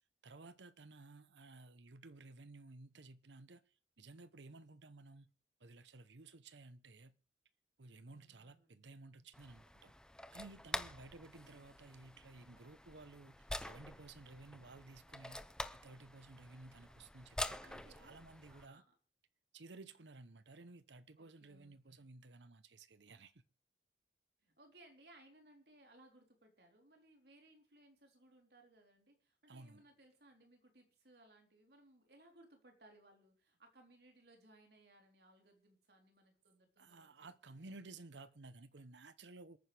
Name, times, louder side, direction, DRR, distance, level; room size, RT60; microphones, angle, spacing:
voice 1, 0.2-3.6 4.0-5.3 5.6-7.1 7.8-9.9 10.3-15.4 15.8-18.8 19.5-23.4 29.5-29.8 36.8-39.6, right 3 dB, 80° right, 0.9 m, -56 dB
voice 2, 8.1-9.0 10.9-11.1 17.4-18.9 21.2-22.1 24.4-38.0, right 1 dB, 65° right, 3.8 m, -65 dB
sound 1, 9.3-18.7, left 1 dB, 5° left, 0.6 m, -47 dB
27.0 x 9.4 x 3.4 m
head